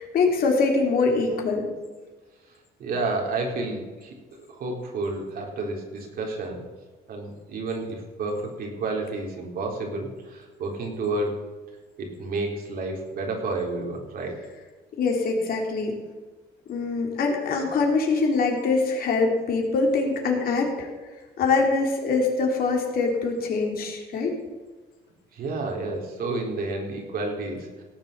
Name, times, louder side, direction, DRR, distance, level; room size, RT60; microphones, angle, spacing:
voice 1, 0.0-1.7 15.0-16.0 16.7-20.9 21.4-24.3, left 4 dB, 60° left, 1 dB, 3.6 m, -23 dB
voice 2, 2.8-6.6 7.1-11.4 12.0-14.4 25.3-27.8, right 3 dB, 60° right, 1 dB, 4.0 m, -30 dB
17.5 x 7.6 x 6.8 m, 1.3 s
cardioid pair, 110°, 17 cm